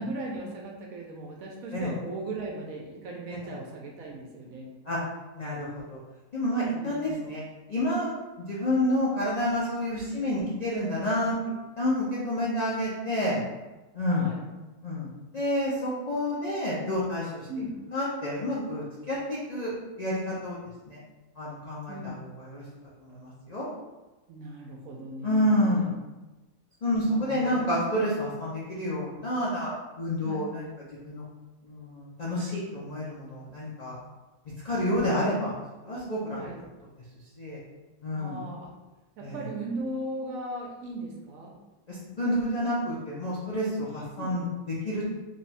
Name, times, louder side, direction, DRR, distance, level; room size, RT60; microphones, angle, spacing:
voice 1, 0.0-4.7 6.7-7.3 14.1-14.4 17.5-17.8 21.9-22.2 24.3-25.9 27.0-27.9 30.2-30.5 36.3-36.6 38.1-38.7 39.2-41.5 44.2-44.4, right 2 dB, 65° right, -1 dB, 1.0 m, -38 dB
voice 2, 5.4-6.0 6.3-7.4 7.7-8.1 8.5-11.4 11.8-13.4 13.9-14.3 14.8-15.1 15.3-17.4 17.9-19.7 20.0-20.6 20.9-21.0 21.4-22.1 22.5-22.6 23.0-23.7 25.2-25.9 26.8-30.7 31.0-31.2 31.6-34.0 34.6-35.5 35.8-36.4 37.4-37.6 38.0-38.4 39.2-39.4 41.9-44.5 44.8-45.1, left 1 dB, 50° left, -7 dB, 0.4 m, -29 dB
3.3 x 2.3 x 4.1 m, 1.1 s
omnidirectional pair, 1.7 m